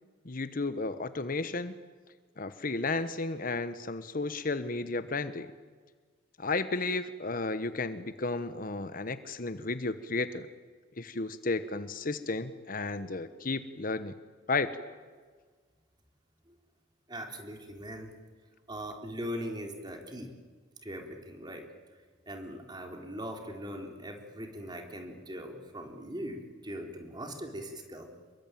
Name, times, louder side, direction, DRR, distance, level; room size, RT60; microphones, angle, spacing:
voice 1, 0.2-1.7 2.4-5.5 6.4-10.5 11.0-14.1 14.5-14.7, left 3 dB, 50° left, 12 dB, 1.1 m, -33 dB
voice 2, 17.1-18.1 18.7-20.3 20.8-21.6 22.3-28.1, equal, 25° right, 3 dB, 3.8 m, -40 dB
27.5 x 23.0 x 9.2 m, 1.5 s
head